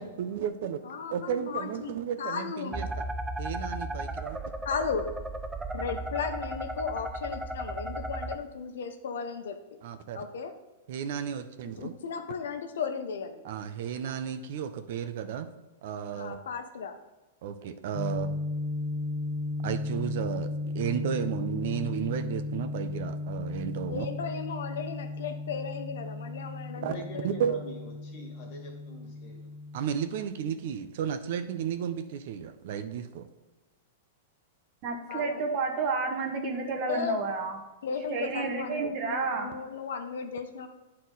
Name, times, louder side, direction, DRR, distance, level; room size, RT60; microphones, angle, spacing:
voice 1, 0.0-0.8 1.1-3.0 3.4-4.4 9.8-10.2 10.9-11.9 13.4-15.5 15.8-16.4 17.4-18.3 19.6-24.1 26.8-26.9 27.2-27.5 29.7-33.3, right 8 dB, 55° right, 10 dB, 0.6 m, -33 dB
voice 2, 0.8-1.9 2.2-2.8 4.6-5.1 5.7-9.8 10.1-10.5 11.8-13.4 16.1-17.0 23.9-27.3 35.1-35.4 36.9-37.2 37.8-40.7, left 6 dB, 80° left, 6 dB, 0.9 m, -35 dB
sound 1, 2.7-8.3, right 1 dB, 5° right, 0.3 m, -35 dB
sound 2, 17.9-30.2, left 2 dB, 10° left, 0.7 m, -35 dB
voice 3, 26.7-29.4, left 1 dB, 35° left, 0 dB, 1.8 m, -44 dB
voice 4, 34.8-37.6 38.1-39.6, right 4 dB, 30° right, 3 dB, 1.1 m, -30 dB
9.3 x 4.3 x 4.0 m, 1.1 s
supercardioid pair, 165°, 0 cm